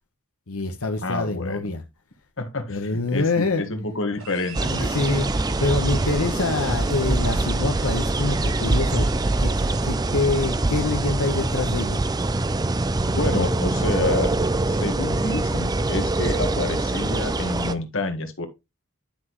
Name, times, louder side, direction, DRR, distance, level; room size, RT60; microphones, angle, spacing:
voice 1, 0.5-1.8 2.7-3.7 4.6-12.0, left 3 dB, 75° left, 1.1 m, -26 dB
voice 2, 1.0-1.7 2.4-4.9 13.1-14.3 14.7-18.5, left 2 dB, 60° left, 1.6 m, -28 dB
sound 1, 4.2-10.7, right 5 dB, 80° right, 5.0 m, -44 dB
sound 2, 4.5-17.7, right 2 dB, 15° right, 0.5 m, -24 dB
10.5 x 6.0 x 3.1 m
head